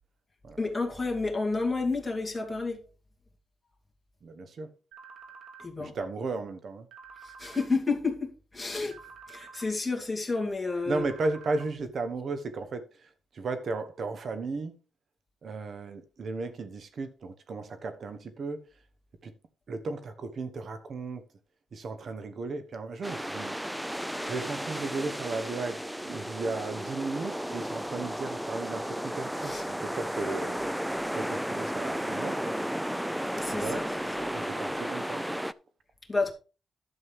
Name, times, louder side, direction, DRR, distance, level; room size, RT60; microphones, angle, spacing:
voice 1, 0.6-2.8 5.6-5.9 7.2-9.0 9.3-11.0 29.4-29.6 33.4-33.9 34.2-34.3 36.1-36.3, left 3 dB, 15° left, 2.5 m, -30 dB
voice 2, 4.2-4.7 5.8-6.9 10.9-14.8 15.4-18.7 19.2-19.3 19.7-21.3 21.7-23.6 24.2-32.6 33.5-33.9 34.3-35.4, right 3 dB, 55° right, 1.1 m, -35 dB
sound 1, 4.9-5.7 6.9-7.7 8.9-9.7 10.9-11.7, right 5 dB, 80° right, 2.4 m, -48 dB
sound 2, 23.0-35.5, equal, 5° right, 0.5 m, -33 dB
11.5 x 7.6 x 3.6 m
cardioid pair, 105°, 0 cm